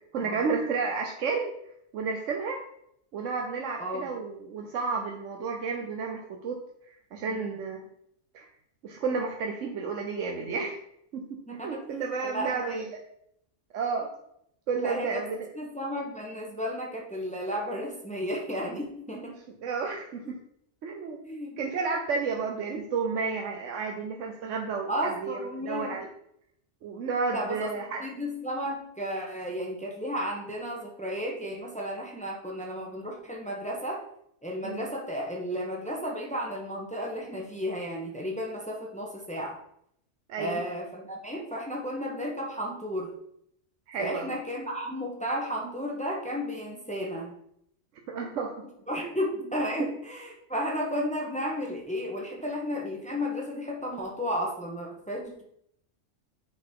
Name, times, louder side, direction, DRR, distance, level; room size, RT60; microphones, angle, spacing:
voice 1, 0.1-1.5 1.9-2.6 3.1-6.6 6.9-7.8 8.3-8.5 8.8-10.7 11.1-13.0 13.7-14.1 14.7-15.5 19.6-20.4 20.8-21.2 21.6-26.1 26.8-28.0 34.6-34.9 40.3-40.6 43.9-44.3 48.1-48.6 49.0-49.1 49.8-49.9, right 5 dB, 85° right, 2 dB, 1.2 m, -31 dB
voice 2, 11.5-11.8 12.3-12.8 14.7-15.2 15.5-19.4 21.2-21.6 24.9-26.0 27.3-27.7 28.0-34.0 34.4-39.6 40.4-43.1 44.0-47.3 48.9-55.4, equal, 5° left, -1 dB, 1.2 m, -33 dB
9.2 x 4.1 x 4.6 m, 0.73 s
omnidirectional pair, 1.2 m